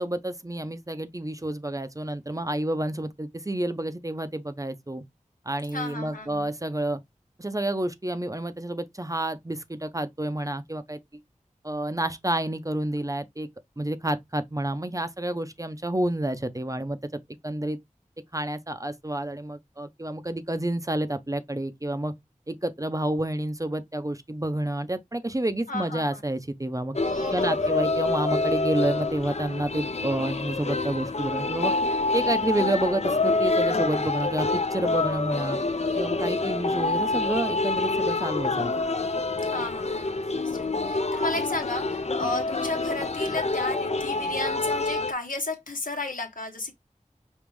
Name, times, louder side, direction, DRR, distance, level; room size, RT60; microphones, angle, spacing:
voice 1, 0.0-5.0 5.5-7.0 7.4-11.0 11.6-13.5 13.8-17.0 17.4-17.8 18.3-22.1 22.5-27.0 27.3-31.7 32.1-35.6 35.9-38.7, right 1 dB, 25° right, 0.6 m, -29 dB
voice 2, 5.7-6.5 25.7-26.2 27.0-27.8 39.4-46.7, left 2 dB, 90° left, 1.2 m, -34 dB
sound 1, 26.9-45.1, left 3 dB, 55° left, 0.5 m, -27 dB
5.2 x 2.4 x 3.1 m
wide cardioid pair, 50°, 14 cm